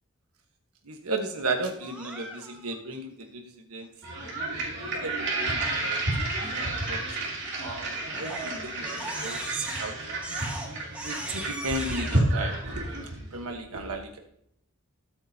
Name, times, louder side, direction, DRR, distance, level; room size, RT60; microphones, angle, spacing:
voice 1, 0.8-3.9 5.0-5.5 5.8-6.0 6.5-7.0 7.6-14.2, right 2 dB, 85° right, 3 dB, 1.4 m, -35 dB
Crying sobbing, 1.8-2.7 7.4-7.7 8.1-12.2, right 1 dB, 5° right, 1.5 m, -38 dB
sound 1, 4.0-13.3, right 2 dB, 50° right, 2.9 m, -31 dB
21.0 x 8.7 x 2.8 m, 0.75 s
head